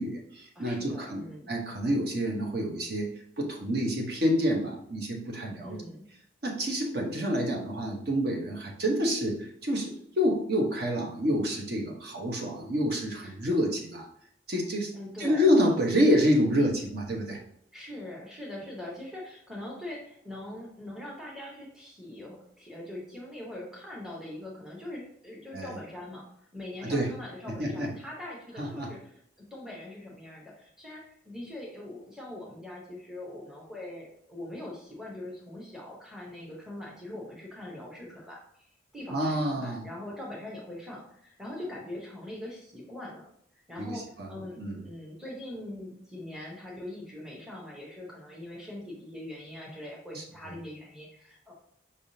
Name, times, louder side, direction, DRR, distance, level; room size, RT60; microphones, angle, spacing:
voice 1, 0.0-1.2 1.5-3.1 3.4-5.8 6.4-14.1 14.5-14.9 15.2-17.4 25.5-25.7 26.8-27.1 27.5-27.9 28.6-28.9 39.1-39.8 43.8-43.9 44.2-44.3 44.6-44.8 50.1-50.2, equal, 55° right, 0 dB, 0.9 m, -28 dB
voice 2, 0.5-1.5 5.6-6.0 13.2-13.3 14.9-15.4 17.7-26.2 26.5-29.1 29.4-38.7 38.9-43.2 43.5-51.5, left 1 dB, 5° right, -4 dB, 0.8 m, -42 dB
5.3 x 3.5 x 2.7 m, 0.69 s
head